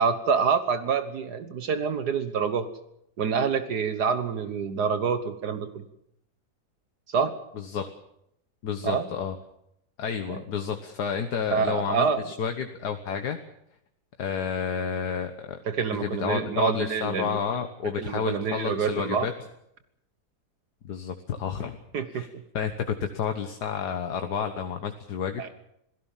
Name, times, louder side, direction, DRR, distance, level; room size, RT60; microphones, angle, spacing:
voice 1, 0.0-2.7 3.2-5.8 7.1-7.4 8.8-9.1 10.3-10.4 11.5-12.3 15.7-17.4 18.0-19.3 21.9-22.2 25.4-25.5, right 6 dB, 70° right, 11 dB, 1.8 m, -26 dB
voice 2, 7.6-7.9 8.6-9.4 10.0-13.4 14.2-15.6 16.0-19.3 20.8-21.8 22.1-22.3 22.5-25.5, left 7 dB, 75° left, 6 dB, 1.8 m, -30 dB
27.0 x 17.0 x 7.3 m, 0.77 s
omnidirectional pair, 1.8 m